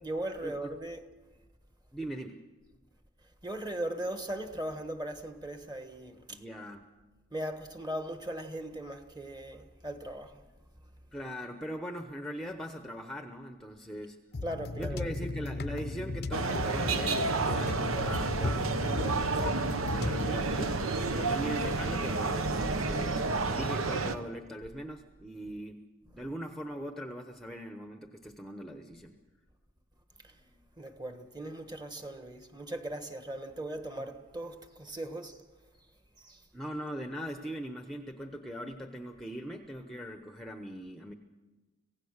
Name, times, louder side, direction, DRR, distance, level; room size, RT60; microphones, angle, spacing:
voice 1, 0.0-1.1 3.4-6.4 7.3-10.4 14.4-15.1 30.2-30.3 30.8-35.4 36.2-36.4, right 1 dB, 20° right, 1.3 m, -38 dB
voice 2, 1.9-2.4 6.3-6.9 11.1-14.2 14.7-19.7 19.9-20.8 21.1-25.8 26.1-29.2 34.0-34.1 36.5-41.1, equal, ahead, 0.8 m, -40 dB
sound 1, 14.3-20.4, left 3 dB, 50° left, 0.6 m, -36 dB
sound 2, 16.3-24.2, right 3 dB, 80° right, 1.1 m, -30 dB
26.0 x 16.5 x 6.5 m
head